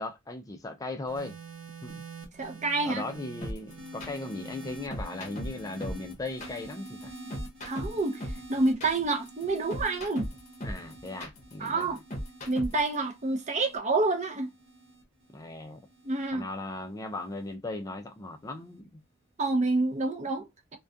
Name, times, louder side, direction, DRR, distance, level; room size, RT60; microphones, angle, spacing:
voice 1, 0.0-1.4 1.8-2.0 2.8-7.1 10.6-12.0 15.3-15.8 16.3-19.0, left 2 dB, 20° left, 0.3 m, -38 dB
sound 1, 1.1-17.5 18.4-18.8, right 2 dB, 75° right, 0.8 m, -47 dB
voice 2, 2.4-3.0 7.6-10.3 11.6-12.0 12.5-14.5 16.0-16.5 19.4-20.8, right 3 dB, 35° right, 0.5 m, -28 dB
sound 2, 3.4-12.9, equal, 35° left, 0.7 m, -38 dB
2.3 x 2.2 x 2.5 m
head